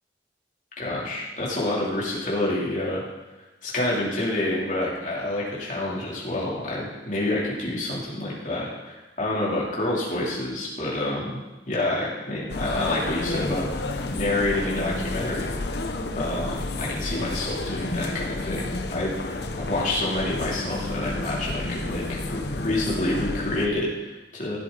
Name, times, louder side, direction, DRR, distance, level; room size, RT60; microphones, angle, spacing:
voice 1, 0.8-3.0 3.6-13.7 14.2-15.5 16.2-24.6, left 1 dB, 45° left, -5 dB, 3.2 m, -28 dB
sound 1, 12.5-23.7, left 2 dB, 65° left, 0.9 m, -31 dB
15.5 x 8.0 x 4.0 m, 1.1 s
head